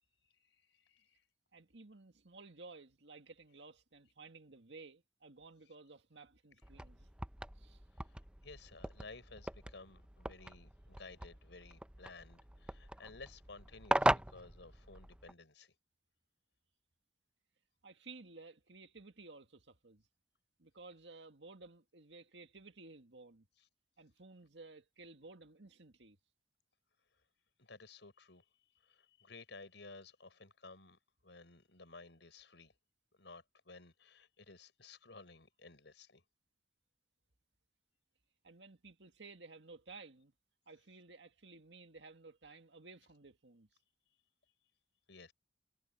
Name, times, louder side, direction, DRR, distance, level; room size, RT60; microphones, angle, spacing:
voice 1, 0.2-1.2 8.0-8.2 8.4-15.7 27.6-28.4 28.8-32.7 33.2-36.2 45.1-45.3, left 3 dB, 80° left, 4.8 m, -55 dB
voice 2, 1.5-7.1 7.6-7.8 17.8-20.1 20.6-23.5 24.0-26.2 38.4-40.3 40.7-43.7, right 3 dB, 75° right, 2.0 m, -55 dB
sound 1, 6.6-15.3, right 1 dB, 5° right, 0.6 m, -39 dB
head